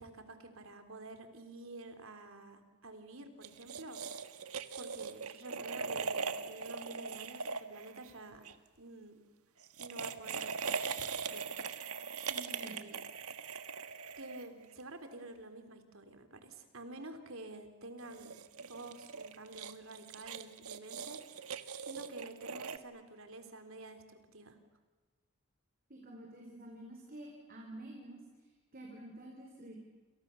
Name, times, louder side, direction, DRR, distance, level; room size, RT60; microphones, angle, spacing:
voice 1, 0.0-4.0 4.8-8.5 8.8-9.2 9.8-10.5 11.0-11.9 12.3-13.0 14.2-18.4 18.7-21.4 21.8-24.6, right 2 dB, 70° right, 7 dB, 3.5 m, -50 dB
sound 1, 3.4-8.5 9.6-14.8 18.0-22.8, right 5 dB, 85° right, 1.5 m, -41 dB
voice 2, 25.9-28.2 28.7-29.7, right 1 dB, 40° right, 1 dB, 4.5 m, -49 dB
29.0 x 28.5 x 7.0 m, 1.3 s
head